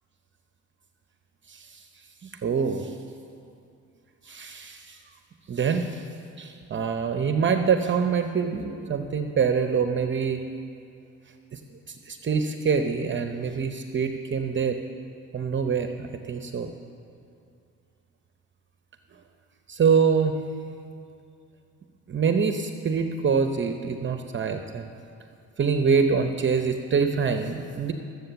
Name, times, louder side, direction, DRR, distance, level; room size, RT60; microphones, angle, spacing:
voice 1, 2.2-2.9 4.3-5.0 5.5-6.0 6.4-10.4 11.5-11.6 11.9-14.8 15.3-16.7 19.7-20.3 22.1-24.9 25.6-27.9, right 6 dB, 40° right, 6 dB, 0.7 m, -25 dB
13.5 x 8.1 x 6.9 m, 2.4 s
cardioid pair, 90°, 30 cm